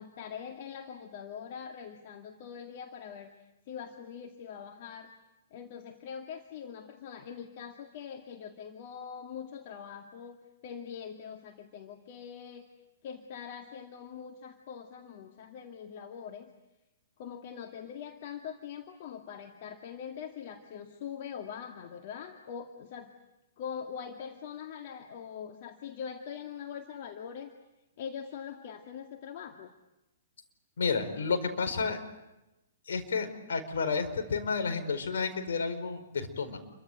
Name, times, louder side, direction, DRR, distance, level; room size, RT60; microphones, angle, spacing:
voice 1, 0.0-3.3 3.7-5.1 5.5-12.7 13.0-16.5 17.2-23.1 23.6-27.5 28.0-29.7, left 7 dB, 45° left, 4 dB, 2.1 m, -43 dB
voice 2, 30.8-32.0 32.9-36.6, left 5 dB, 65° left, 7 dB, 4.9 m, -31 dB
29.0 x 24.0 x 8.2 m, 0.97 s
figure-of-eight pair, 115°, 0 cm